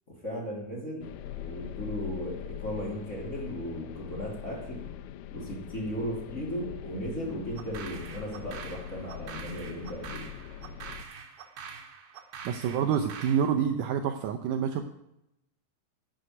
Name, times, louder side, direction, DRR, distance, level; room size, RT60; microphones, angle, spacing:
voice 1, 0.2-4.8 5.3-10.2, equal, 20° left, -3 dB, 2.8 m, -36 dB
sound 1, 1.0-11.0, left 10 dB, 85° left, 2.6 m, -42 dB
sound 2, 7.6-13.5, right 6 dB, 60° right, 2.5 m, -45 dB
voice 2, 12.5-14.8, right 8 dB, 85° right, 7 dB, 1.8 m, -27 dB
11.0 x 6.6 x 9.2 m, 0.85 s
omnidirectional pair, 4.6 m